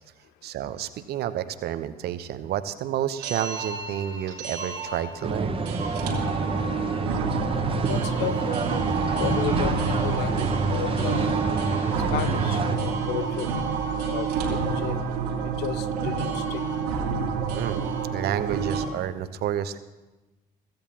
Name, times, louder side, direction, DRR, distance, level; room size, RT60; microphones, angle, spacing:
voice 1, 0.4-5.5 17.5-19.8, right 11 dB, 50° right, 12 dB, 1.0 m, -30 dB
sound 1, 3.2-18.9, right 5 dB, 75° right, 2.2 m, -28 dB
sound 2, 5.2-12.8, right 3 dB, 25° right, 1.4 m, -28 dB
voice 2, 7.6-8.6 9.2-11.3 12.1-13.5 14.0-15.0 15.6-16.6, left 12 dB, 55° left, 15 dB, 0.6 m, -33 dB
22.0 x 15.5 x 3.0 m, 1.1 s
figure-of-eight pair, 50°, 21 cm